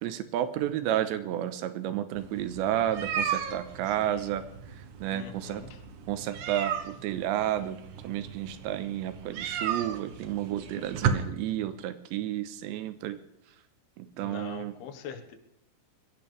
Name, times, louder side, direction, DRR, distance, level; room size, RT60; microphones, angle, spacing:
voice 1, 0.0-4.4 4.7-5.6 6.1-7.8 8.0-13.2 14.0-14.7, right 12 dB, 90° right, 11 dB, 3.2 m, -31 dB
sound 1, 2.2-11.1, right 8 dB, 70° right, 1.9 m, -35 dB
voice 2, 3.9-4.3 5.1-5.8 14.2-15.4, left 7 dB, 70° left, 6 dB, 3.2 m, -43 dB
22.5 x 16.0 x 3.4 m, 0.78 s
omnidirectional pair, 5.1 m